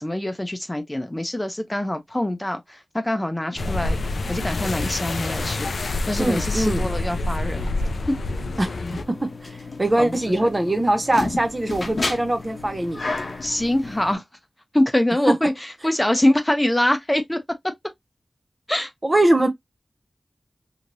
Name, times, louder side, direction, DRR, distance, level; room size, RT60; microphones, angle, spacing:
voice 1, 0.0-4.0 4.3-5.7 6.1-7.7 8.1-8.2 10.0-10.1 13.4-14.2 14.7-17.4 18.7-18.9, left 1 dB, 15° left, 0.6 m, -24 dB
sound 1, 3.6-9.0, left 2 dB, 85° left, 0.4 m, -27 dB
voice 2, 6.2-6.9 8.6-8.7 9.1-13.0 19.0-19.5, right 1 dB, 30° right, 0.6 m, -22 dB
sound 2, 8.9-14.1, left 3 dB, 60° left, 0.8 m, -32 dB
3.1 x 2.8 x 2.5 m
wide cardioid pair, 85°, 0 cm